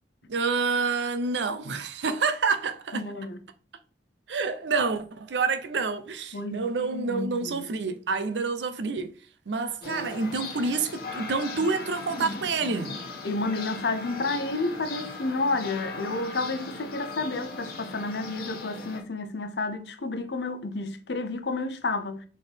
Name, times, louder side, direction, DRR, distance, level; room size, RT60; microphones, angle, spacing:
voice 1, 0.3-3.2 4.3-9.1 9.5-12.9, right 4 dB, 85° right, 0.6 m, -28 dB
voice 2, 2.9-3.4 6.3-7.7 13.2-22.2, left 3 dB, 75° left, 0.7 m, -31 dB
sound 1, 9.8-19.0, left 3 dB, 60° left, 1.0 m, -38 dB
4.3 x 3.7 x 3.4 m
head